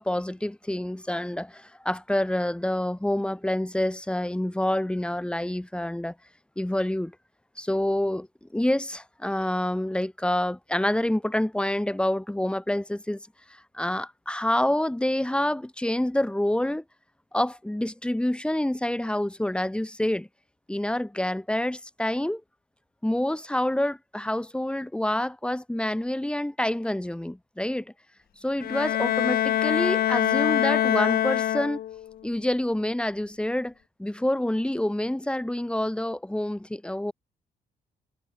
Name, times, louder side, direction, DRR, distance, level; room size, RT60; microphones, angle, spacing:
voice 1, 0.0-6.1 6.6-7.1 7.6-16.8 17.3-20.3 20.7-22.4 23.0-27.9 28.4-31.8 32.2-33.7 34.0-37.1, left 1 dB, 5° left, 6.8 m, -27 dB
Bowed string instrument, 28.6-32.1, left 11 dB, 75° left, 2.2 m, -24 dB
cardioid pair, 95°, 16 cm